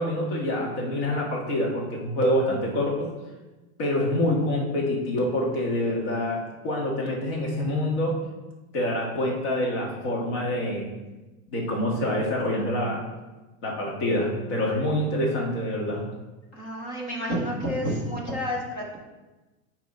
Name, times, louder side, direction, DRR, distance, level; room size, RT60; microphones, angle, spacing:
voice 1, 0.0-3.1 3.8-8.2 8.7-10.9 11.5-13.0 13.6-16.0, left 1 dB, 45° left, -2 dB, 1.7 m, -26 dB
voice 2, 16.5-19.0, equal, 10° left, -1 dB, 0.3 m, -29 dB
8.9 x 3.1 x 3.9 m, 1.1 s
supercardioid pair, 160°, 44 cm